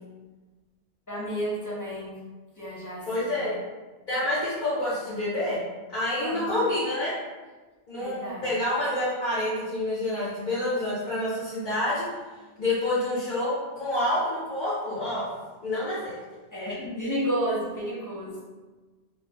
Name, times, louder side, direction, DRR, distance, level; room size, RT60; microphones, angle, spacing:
voice 1, 1.1-2.1 2.6-3.4 6.2-6.6 8.0-8.4 16.5-18.3, equal, 25° left, -6 dB, 0.5 m, -31 dB
voice 2, 3.1-3.6 4.1-5.6 5.9-7.1 7.9-12.1 12.6-15.2 15.6-16.1, left 1 dB, 50° left, -10 dB, 0.9 m, -28 dB
2.5 x 2.0 x 3.2 m, 1.3 s
omnidirectional pair, 1.0 m